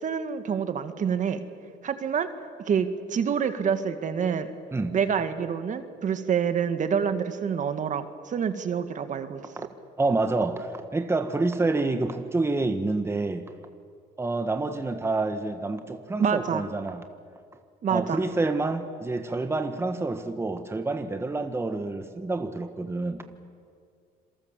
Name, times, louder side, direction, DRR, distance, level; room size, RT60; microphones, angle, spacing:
voice 1, 0.0-1.4 1.8-2.3 2.7-4.5 4.9-9.4 16.2-16.6 17.8-18.2, right 7 dB, 50° right, 9 dB, 1.8 m, -27 dB
voice 2, 10.0-13.5 14.2-17.0 17.9-23.2, right 3 dB, 15° right, 7 dB, 1.5 m, -28 dB
27.0 x 23.5 x 7.5 m, 2.2 s
cardioid pair, 110°, 17 cm